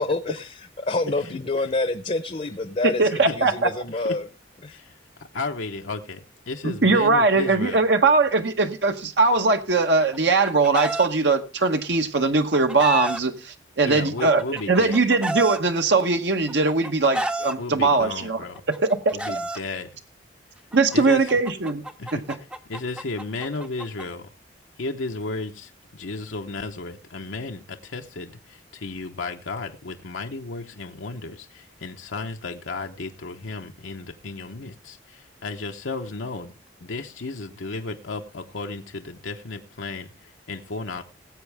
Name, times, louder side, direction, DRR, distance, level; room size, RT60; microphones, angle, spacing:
voice 1, 0.0-4.3 4.6-4.8, left 2 dB, 35° left, 11 dB, 0.7 m, -27 dB
voice 2, 2.8-3.7 6.6-19.4 20.7-21.8 22.1-22.2, right 3 dB, 65° right, 6 dB, 0.9 m, -21 dB
voice 3, 5.2-7.8 13.8-15.0 17.6-18.6 19.1-19.9 20.9-21.3 22.0-22.2 22.7-24.3 24.8-36.5 36.8-41.0, left 3 dB, 85° left, 4 dB, 0.9 m, -34 dB
Chicken rooster, 10.1-11.1 12.2-13.2 14.2-15.6 16.5-17.5 18.5-19.6 20.7-24.0, right 1 dB, 5° right, 0.6 m, -30 dB
19.0 x 8.1 x 3.4 m, 0.30 s
head